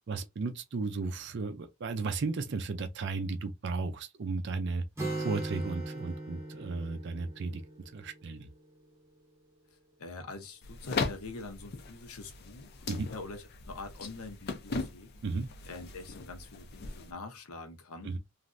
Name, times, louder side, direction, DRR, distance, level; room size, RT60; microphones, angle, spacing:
voice 1, 0.0-4.8 5.2-7.6 7.9-8.5 12.9-13.1 15.2-15.5 18.0-18.2, right 3 dB, 50° right, 0.4 m, -34 dB
Acoustic guitar, 5.0-8.7, right 2 dB, 10° right, 0.8 m, -39 dB
voice 2, 10.0-12.7 13.0-15.1 15.7-18.2, left 3 dB, 80° left, 0.8 m, -44 dB
sound 1, 10.6-17.1, left 4 dB, 45° left, 0.5 m, -39 dB
3.1 x 2.5 x 2.5 m
head